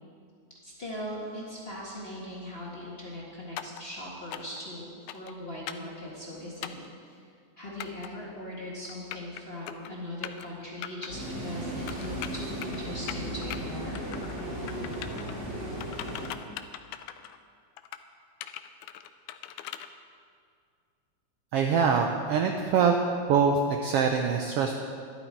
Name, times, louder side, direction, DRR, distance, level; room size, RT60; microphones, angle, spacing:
voice 1, 0.6-7.2 7.6-14.0, left 1 dB, 25° left, -5 dB, 1.4 m, -40 dB
sound 1, 3.6-3.8 4.3-4.6 5.1-5.3 5.7-5.9 6.6-6.9 7.8-8.1 8.9-9.4 9.7-9.9 10.2-10.5 10.8-11.1 11.9-12.8 13.1-13.6 13.9-14.4 14.7-15.3 15.8-17.4 17.8-18.0 18.4-19.9, left 12 dB, 85° left, 1.9 m, -39 dB
Medellin Metro Busy Frequent Walla Stereo, 11.1-16.3, right 1 dB, 20° right, 3.1 m, -36 dB
voice 2, 21.5-22.9 23.3-24.7, right 6 dB, 85° right, 3 dB, 1.3 m, -24 dB
12.0 x 11.5 x 4.5 m, 2.2 s
omnidirectional pair, 3.4 m